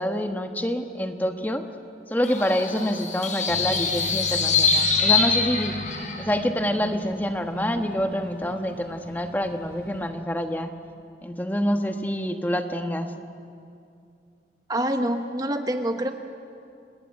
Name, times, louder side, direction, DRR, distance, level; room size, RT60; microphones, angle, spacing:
voice 1, 0.0-1.6 2.1-5.8 6.2-10.7 11.2-13.1, equal, 10° left, 6 dB, 1.2 m, -27 dB
sound 1, 2.2-6.2, left 4 dB, 45° left, 4.2 m, -24 dB
sound 2, 3.5-10.1, left 1 dB, 70° left, 4.9 m, -38 dB
voice 2, 14.7-16.1, right 1 dB, 20° right, 6 dB, 1.0 m, -26 dB
28.5 x 19.0 x 9.7 m, 2.4 s
head